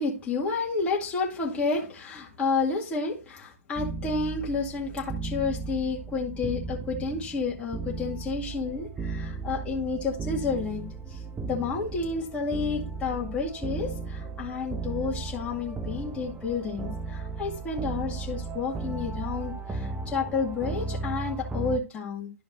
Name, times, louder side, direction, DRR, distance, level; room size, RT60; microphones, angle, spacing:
voice 1, 0.0-22.3, left 4 dB, 15° left, -3 dB, 2.1 m, -30 dB
sound 1, 3.8-21.8, right 3 dB, 10° right, 0.7 m, -35 dB
12.0 x 5.1 x 2.6 m, 0.31 s
hypercardioid pair, 130°, 8 cm